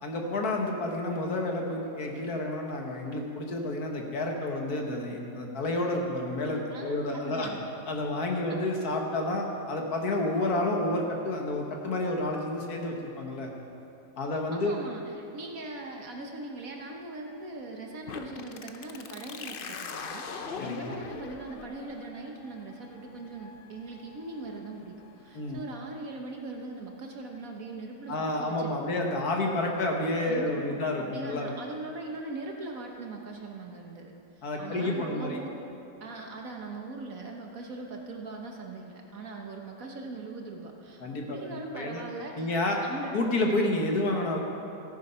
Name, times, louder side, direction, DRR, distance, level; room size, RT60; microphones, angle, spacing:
voice 1, 0.0-7.5 7.9-13.5 14.2-14.8 20.6-21.0 25.4-25.6 28.1-31.5 34.4-35.4 41.0-42.0 42.4-42.8 43.1-44.4, left 2 dB, 60° left, 1 dB, 1.8 m, -30 dB
voice 2, 6.7-7.7 8.5-8.6 14.3-29.0 30.3-35.5 36.0-41.0 41.3-42.5 42.8-43.1, right 2 dB, 55° right, 1 dB, 1.4 m, -40 dB
sound 1, 18.1-25.6, left 5 dB, 75° left, 0.5 m, -42 dB
15.0 x 9.2 x 5.6 m, 2.8 s
omnidirectional pair, 1.9 m